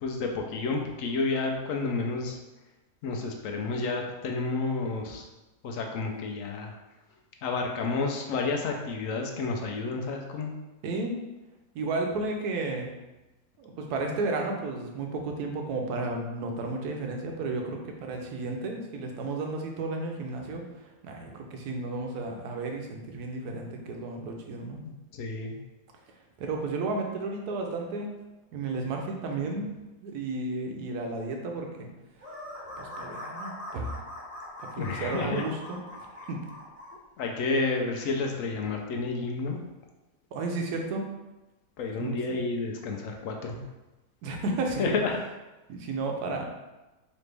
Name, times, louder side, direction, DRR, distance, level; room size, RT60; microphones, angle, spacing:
voice 1, 0.0-2.4 3.0-5.2 5.6-6.7 7.4-10.5 25.1-25.6 34.8-35.4 37.2-39.6 41.8-43.7 44.8-45.2, left 3 dB, 70° left, 2 dB, 0.8 m, -30 dB
voice 2, 10.8-11.1 11.7-12.9 13.6-24.8 26.4-28.2 28.5-29.7 30.0-31.9 32.8-33.9 34.6-35.8 36.3-36.4 40.3-41.1 42.0-42.4 44.2-44.9 45.7-46.4, right 3 dB, 75° right, 2 dB, 1.2 m, -33 dB
sound 1, 32.2-36.9, left 1 dB, 10° right, 1.0 m, -41 dB
4.2 x 2.9 x 3.3 m, 1.1 s
omnidirectional pair, 1.8 m